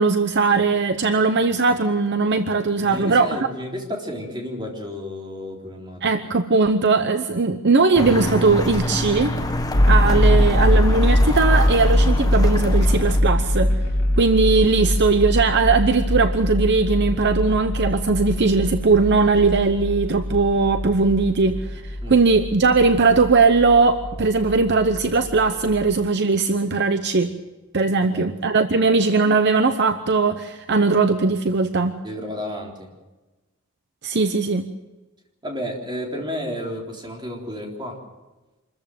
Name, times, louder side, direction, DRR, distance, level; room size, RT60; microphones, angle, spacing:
voice 1, 0.0-3.5 6.0-9.3 9.9-13.8 14.2-27.3 27.7-32.0 34.0-34.7, right 4 dB, 55° right, 9 dB, 0.8 m, -19 dB
voice 2, 2.6-6.0 22.0-22.2 28.0-28.2 28.8-29.0 32.0-32.9 35.4-38.0, equal, 20° right, 0 dB, 3.8 m, -32 dB
sound 1, 7.9-13.2, left 1 dB, 15° left, 1.2 m, -27 dB
sound 2, 9.7-26.0, left 1 dB, 80° left, 2.6 m, -22 dB
26.0 x 14.5 x 7.7 m, 1.2 s
head